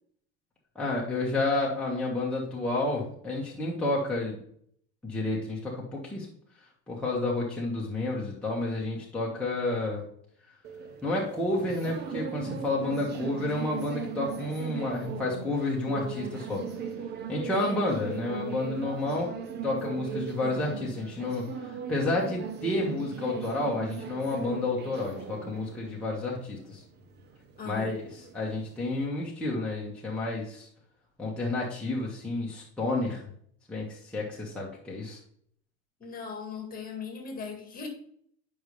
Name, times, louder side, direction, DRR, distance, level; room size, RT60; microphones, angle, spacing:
voice 1, 0.8-4.4 5.0-6.3 6.9-10.0 11.0-16.6 17.3-19.3 19.6-26.8 27.7-28.0 28.3-30.7 31.2-33.2 33.7-35.2, left 2 dB, 5° left, -5 dB, 1.7 m, -30 dB
sound 1, 10.6-29.1, right 6 dB, 30° right, 0.8 m, -39 dB
voice 2, 27.6-27.9 36.0-37.9, left 5 dB, 25° left, 2 dB, 2.1 m, -39 dB
10.5 x 5.5 x 3.4 m, 0.64 s
supercardioid pair, 125°, 32 cm